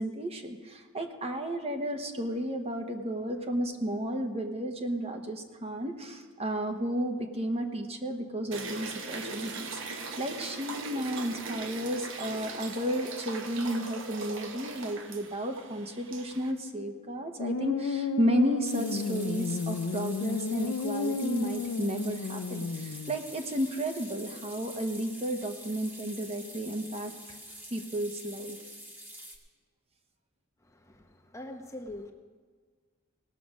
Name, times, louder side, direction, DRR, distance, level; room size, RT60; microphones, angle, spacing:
voice 1, 0.0-27.1 27.7-28.6, equal, 30° right, 5 dB, 1.0 m, -32 dB
sound 1, 8.5-16.5, right 3 dB, 65° right, 1.1 m, -40 dB
sound 2, 17.4-23.2, left 4 dB, 85° left, 0.5 m, -32 dB
sound 3, 18.6-29.4, equal, 10° right, 1.3 m, -46 dB
voice 2, 30.6-32.1, left 1 dB, 15° left, 4 dB, 0.8 m, -43 dB
18.0 x 6.8 x 6.2 m, 1.5 s
head